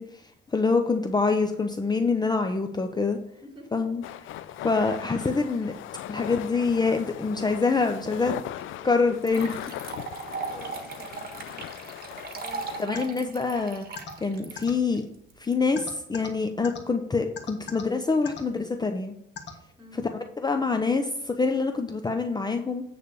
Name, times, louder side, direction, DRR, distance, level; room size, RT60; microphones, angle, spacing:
voice 1, 0.0-3.2 3.7-4.0 4.6-5.7 6.1-8.3 8.8-9.6 12.8-13.8 14.2-15.0 15.4-19.1 19.9-20.0 20.4-22.8, left 4 dB, 20° left, 5 dB, 0.6 m, -25 dB
voice 2, 3.4-3.8 10.5-11.6 12.4-13.3 19.8-20.1, right 1 dB, 25° right, 0 dB, 3.0 m, -48 dB
sound 1, 4.0-12.9, left 12 dB, 80° left, 0.5 m, -39 dB
sound 2, 8.6-8.7 9.2-15.5, right 5 dB, 50° right, 1.3 m, -38 dB
sound 3, 12.9-13.0 14.0-14.1 14.6-14.7 15.8-16.3 16.6-16.8 17.4-17.8 18.3-18.4 19.4-19.5, left 8 dB, 60° left, 1.5 m, -36 dB
9.2 x 3.4 x 6.8 m, 0.77 s
cardioid pair, 90°, 20 cm